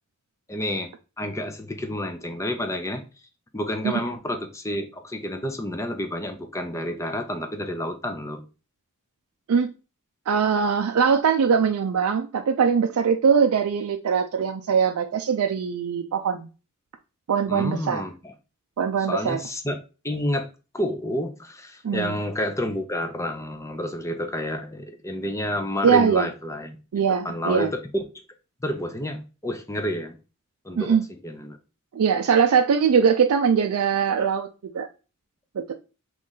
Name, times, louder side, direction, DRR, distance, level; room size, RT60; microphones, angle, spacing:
voice 1, 0.5-0.9 1.2-3.0 3.5-8.4 17.5-18.3 19.1-19.8 20.0-20.5 20.7-26.8 27.2-28.1 28.6-30.2 30.6-31.0 31.2-31.6, left 1 dB, 15° left, 0.6 m, -29 dB
voice 2, 10.3-16.5 17.3-18.0 18.8-19.4 21.8-22.2 25.8-26.3 26.9-27.7 30.8-31.0 31.9-34.5 34.7-34.9 35.6-35.7, right 6 dB, 90° right, 0.4 m, -21 dB
3.8 x 3.1 x 3.7 m
head